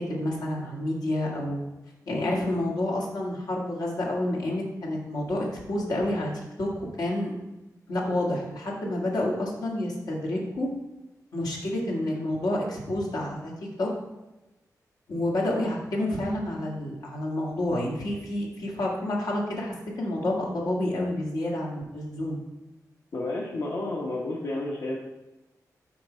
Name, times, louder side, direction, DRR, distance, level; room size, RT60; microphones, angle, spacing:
voice 1, 0.1-1.7 2.1-6.3 6.6-7.3 7.9-10.7 11.3-13.5 13.8-13.9 15.1-22.4, left 1 dB, 80° left, -3 dB, 1.7 m, -29 dB
voice 2, 23.1-25.0, left 2 dB, 65° left, -4 dB, 1.0 m, -31 dB
6.0 x 4.3 x 5.0 m, 1.0 s
wide cardioid pair, 115°, 7 cm